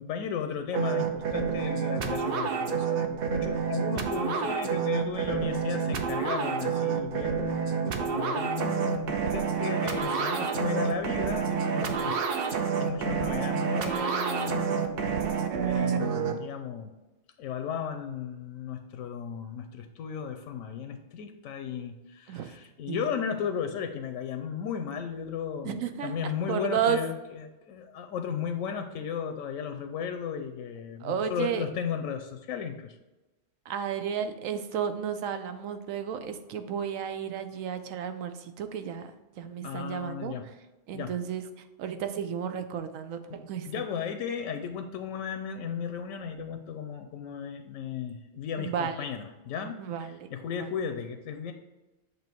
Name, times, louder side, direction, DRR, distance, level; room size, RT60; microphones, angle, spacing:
voice 1, 0.0-15.2 15.6-16.9 17.4-32.9 39.6-40.5 40.9-41.1 43.3-51.5, left 7 dB, 85° left, 7 dB, 1.0 m, -35 dB
sound 1, 0.7-16.3, right 6 dB, 55° right, 0.7 m, -29 dB
voice 2, 25.6-26.1 26.5-27.0 31.0-31.7 33.7-39.1 39.4-40.3 40.9-41.4 41.8-43.8 48.6-49.1 49.8-50.2 50.6-50.7, right 8 dB, 85° right, 9 dB, 1.0 m, -32 dB
7.7 x 2.8 x 4.4 m, 1.1 s
omnidirectional pair, 1.4 m